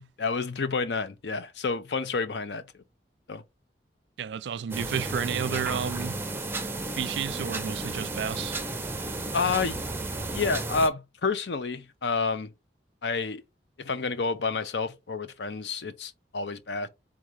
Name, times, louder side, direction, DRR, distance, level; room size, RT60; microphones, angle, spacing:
voice 1, 0.2-2.8 3.3-3.4 9.3-9.8 10.3-12.5 13.0-13.4 13.8-16.9, left 4 dB, 70° left, 0.6 m, -29 dB
voice 2, 4.2-6.2 7.0-8.6, right 7 dB, 70° right, 0.3 m, -31 dB
sound 1, 4.7-10.9, right 2 dB, 10° right, 0.5 m, -33 dB
3.8 x 2.7 x 4.8 m
head